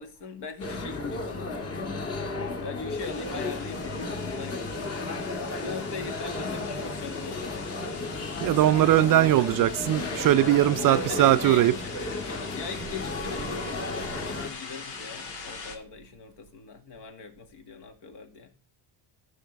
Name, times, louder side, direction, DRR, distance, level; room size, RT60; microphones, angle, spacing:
voice 1, 0.0-1.9 2.6-7.8 10.9-18.5, left 4 dB, 60° left, 2.1 m, -41 dB
sound 1, 0.6-14.5, left 3 dB, 35° left, 1.8 m, -34 dB
sound 2, 3.0-15.8, left 5 dB, 80° left, 2.4 m, -43 dB
voice 2, 8.4-11.7, right 14 dB, 50° right, 0.4 m, -20 dB
14.5 x 5.6 x 3.4 m
cardioid pair, 115°, 44 cm